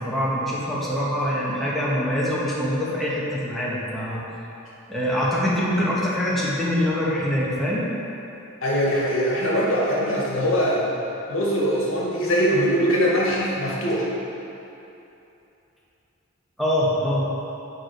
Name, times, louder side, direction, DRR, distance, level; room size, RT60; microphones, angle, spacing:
voice 1, 0.0-4.2 4.9-7.9 16.6-17.2, equal, ahead, -8 dB, 1.3 m, -24 dB
voice 2, 8.6-10.8 11.3-14.1, equal, 70° left, -5 dB, 1.7 m, -22 dB
7.2 x 4.9 x 5.2 m, 2.9 s
head